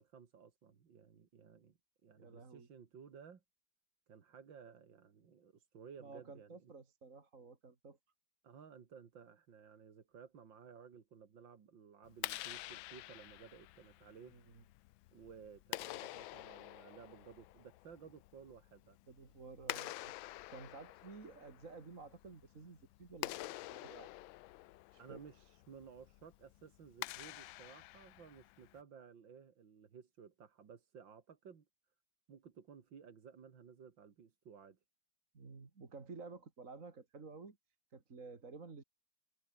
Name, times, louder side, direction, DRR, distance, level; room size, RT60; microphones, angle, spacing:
voice 1, 0.0-3.4 4.1-6.7 8.4-14.4 15.1-19.0 25.0-31.7 32.3-34.8, right 6 dB, 70° right, 2.8 m, -57 dB
voice 2, 2.2-2.7 6.0-8.0 14.3-14.6 19.1-20.1 20.5-24.1 24.9-25.2 35.3-37.6 37.9-38.8, right 4 dB, 40° right, 2.7 m, -52 dB
Clapping, 12.1-28.8, left 17 dB, 90° left, 1.4 m, -48 dB
omnidirectional pair, 2.1 m